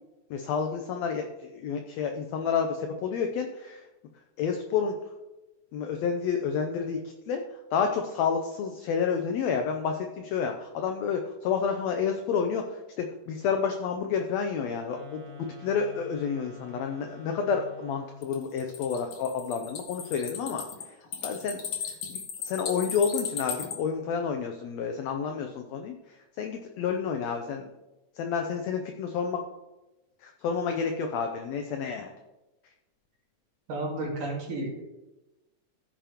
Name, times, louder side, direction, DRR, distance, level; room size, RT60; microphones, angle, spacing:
voice 1, 0.3-3.8 4.4-4.9 5.7-7.4 7.7-21.0 21.2-21.6 22.1-27.7 28.1-29.4 30.2-32.1, left 6 dB, 80° left, 4 dB, 1.6 m, -30 dB
sound 1, 14.7-18.4, left 2 dB, 65° right, 3.0 m, -47 dB
sound 2, 18.2-23.8, left 7 dB, 55° left, 1.7 m, -36 dB
voice 2, 33.7-34.8, right 2 dB, 90° right, -3 dB, 3.9 m, -32 dB
15.0 x 7.0 x 2.9 m, 1.0 s
omnidirectional pair, 3.7 m